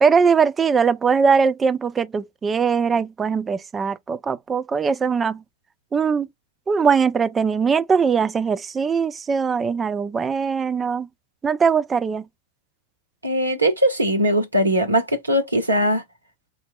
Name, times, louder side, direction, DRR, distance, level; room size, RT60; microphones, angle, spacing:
voice 1, 0.0-5.4 5.9-6.3 6.7-11.1 11.4-12.2, right 5 dB, 20° right, 0.4 m, -21 dB
voice 2, 13.2-16.0, equal, 80° right, 1.0 m, -20 dB
4.3 x 2.8 x 2.2 m
figure-of-eight pair, 90°, 0 cm